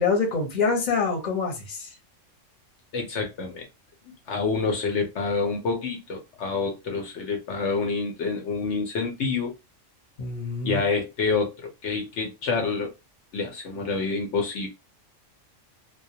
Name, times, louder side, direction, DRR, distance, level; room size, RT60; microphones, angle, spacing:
voice 1, 0.0-1.9 10.2-10.8, left 4 dB, 40° left, 0.8 m, -25 dB
voice 2, 2.9-3.7 4.3-9.5 10.6-12.9 13.3-14.7, left 4 dB, 70° left, 0.9 m, -27 dB
2.2 x 2.1 x 2.6 m
omnidirectional pair, 1.3 m